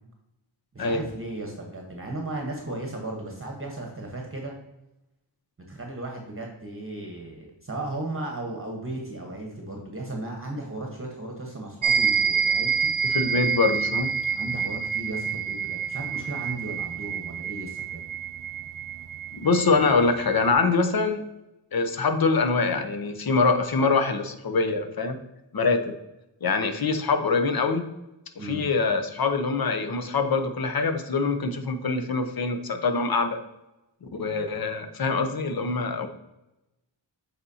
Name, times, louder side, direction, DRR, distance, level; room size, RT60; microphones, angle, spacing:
voice 1, 0.7-4.6 5.7-12.9 14.3-18.0 28.4-28.6, right 2 dB, 30° right, 1 dB, 1.1 m, -35 dB
sound 1, 11.8-20.5, right 6 dB, 45° right, 0.6 m, -28 dB
voice 2, 13.1-14.1 19.3-21.2 21.7-25.2 25.5-25.9 26.4-27.9 28.4-33.4 34.0-36.1, left 4 dB, 50° left, 8 dB, 0.8 m, -24 dB
7.9 x 4.3 x 2.8 m, 0.96 s
wide cardioid pair, 70°, 46 cm